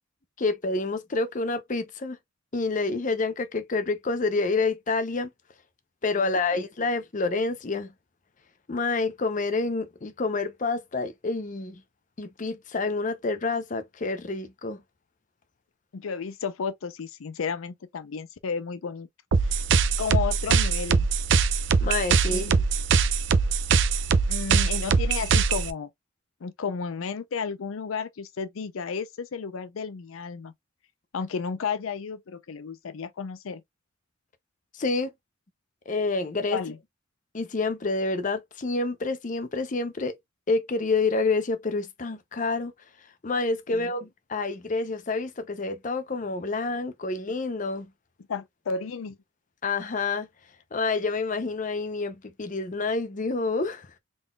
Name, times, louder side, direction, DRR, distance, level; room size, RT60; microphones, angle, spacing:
voice 1, 0.4-2.2 2.5-5.3 6.0-7.9 8.7-11.8 12.2-14.8 21.8-22.5 34.7-35.1 35.9-36.6 37.3-40.1 40.5-42.7 43.2-47.9 49.6-50.3 50.7-54.0, left 3 dB, 40° left, 0.6 m, -28 dB
voice 2, 15.9-19.1 19.4-19.6 20.0-21.1 22.3-22.6 24.3-25.9 26.4-30.5 31.1-33.6 36.5-36.8 43.7-43.9 48.3-49.2, left 5 dB, 85° left, 0.5 m, -33 dB
sound 1, 19.3-25.7, right 5 dB, 60° right, 0.5 m, -22 dB
3.7 x 3.7 x 2.2 m
head